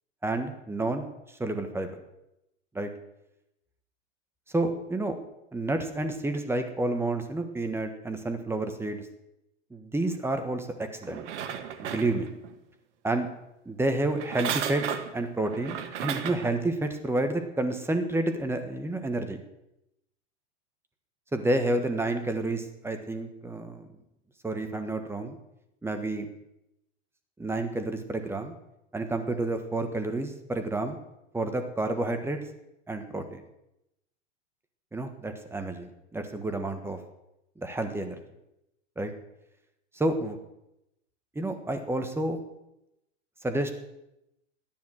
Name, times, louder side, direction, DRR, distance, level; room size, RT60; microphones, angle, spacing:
voice 1, 0.2-1.0 1.4-1.9 2.7-2.9 4.5-5.2 5.5-9.1 9.7-11.2 11.8-12.3 13.0-13.3 13.6-19.4 21.3-23.9 24.4-25.3 25.8-26.3 27.4-28.5 28.9-31.0 31.3-32.4 32.9-33.4 34.9-37.0 37.6-38.2 39.0-39.1 39.9-40.4 41.3-42.4 43.4-43.7, right 2 dB, 5° right, 7 dB, 1.4 m, -30 dB
sound 1, 11.0-12.5 14.1-16.5 17.1-17.2, right 9 dB, 70° right, 1.6 m, -34 dB
13.0 x 10.5 x 6.4 m, 0.87 s
hypercardioid pair, 125°, 37 cm